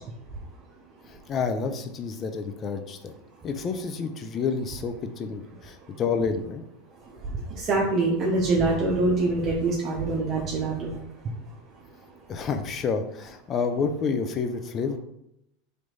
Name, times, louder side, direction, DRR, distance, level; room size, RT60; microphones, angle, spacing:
voice 1, 1.1-3.1 3.4-6.6 12.3-15.0, left 5 dB, 35° left, 7 dB, 0.6 m, -29 dB
voice 2, 7.6-10.9, right 3 dB, 40° right, -2 dB, 0.8 m, -24 dB
3.4 x 3.1 x 4.0 m, 0.80 s
figure-of-eight pair, 85°, 0 cm